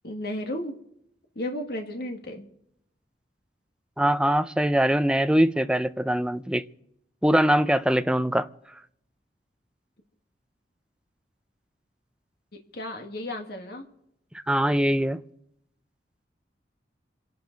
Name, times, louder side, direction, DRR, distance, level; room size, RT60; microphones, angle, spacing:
voice 1, 0.0-0.8 1.4-2.5 12.7-13.9, left 1 dB, 60° left, 2.0 m, -33 dB
voice 2, 4.0-6.6 7.2-8.5 14.5-15.2, right 1 dB, 5° right, 0.5 m, -22 dB
27.5 x 11.5 x 4.0 m
head